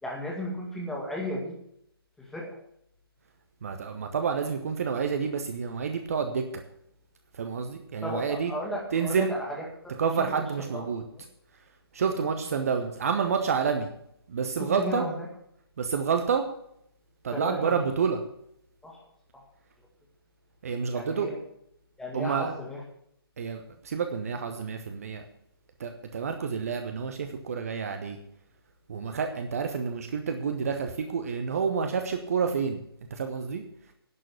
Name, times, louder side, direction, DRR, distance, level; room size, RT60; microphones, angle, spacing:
voice 1, 0.0-1.6 2.2-2.5 8.0-10.4 10.7-10.8 11.1-11.2 12.5-12.6 14.6-15.3 17.3-17.8 18.8-19.0 19.3-19.4 20.9-21.4 22.0-22.8, equal, 5° left, -2 dB, 2.1 m, -35 dB
voice 2, 3.6-6.6 7.3-8.5 8.9-9.3 10.0-11.0 11.9-13.9 14.3-15.0 15.8-16.4 17.2-18.2 20.6-21.3 22.1-22.5 23.4-25.2 25.8-28.2 28.9-32.8 33.1-33.6, right 6 dB, 35° right, 6 dB, 1.1 m, -29 dB
11.0 x 6.3 x 9.1 m, 0.72 s
figure-of-eight pair, 145°, 13 cm